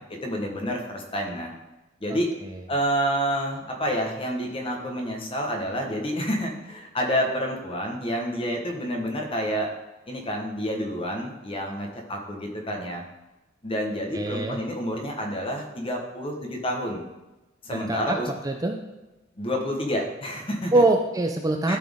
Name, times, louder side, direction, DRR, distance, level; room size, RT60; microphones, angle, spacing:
voice 1, 0.1-1.5 2.0-2.3 2.7-9.7 10.1-13.0 13.6-17.0 17.6-18.3 19.4-20.8 21.7-21.8, equal, 30° left, 1 dB, 1.3 m, -29 dB
voice 2, 2.1-2.6 14.1-14.6 17.7-18.2 18.4-18.8 20.7-21.8, right 2 dB, 20° right, 3 dB, 0.5 m, -24 dB
12.5 x 4.3 x 3.6 m, 1.0 s
head